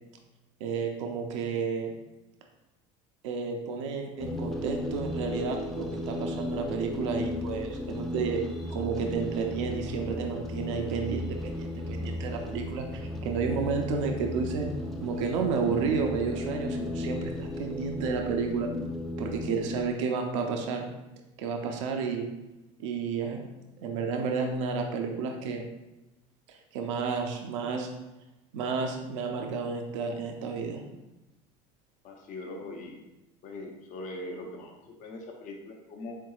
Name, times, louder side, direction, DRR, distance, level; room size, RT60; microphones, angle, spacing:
voice 1, 0.6-1.9 3.2-8.4 8.7-14.7 15.0-18.7 19.2-20.9 21.4-22.3 22.8-23.5 23.8-25.6 26.5-27.9 28.5-30.8, right 5 dB, 85° right, 3 dB, 0.5 m, -31 dB
sound 1, 4.2-19.8, left 1 dB, ahead, 0.5 m, -35 dB
voice 2, 32.0-33.0 33.4-36.2, left 2 dB, 55° left, 2 dB, 0.8 m, -41 dB
4.4 x 3.8 x 2.4 m, 0.99 s
supercardioid pair, 95°, 15 cm